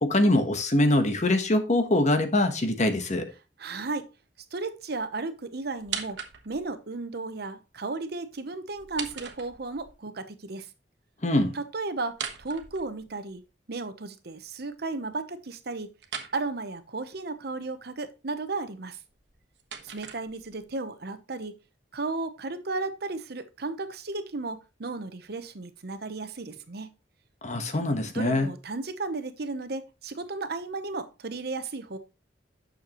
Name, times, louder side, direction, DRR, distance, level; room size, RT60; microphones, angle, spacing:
voice 1, 0.0-3.3 11.2-11.5 27.4-28.5, left 1 dB, 45° left, 1.2 m, -23 dB
voice 2, 3.6-4.1 4.5-6.2 6.4-10.7 11.5-13.4 13.7-15.9 16.3-19.0 19.8-21.6 21.9-26.9 28.1-32.0, right 3 dB, 65° right, 0.9 m, -34 dB
sound 1, 5.8-6.7 8.7-9.9 12.1-13.4 16.0-16.4 19.1-20.7, right 7 dB, 85° right, 1.2 m, -39 dB
9.3 x 6.6 x 3.0 m
head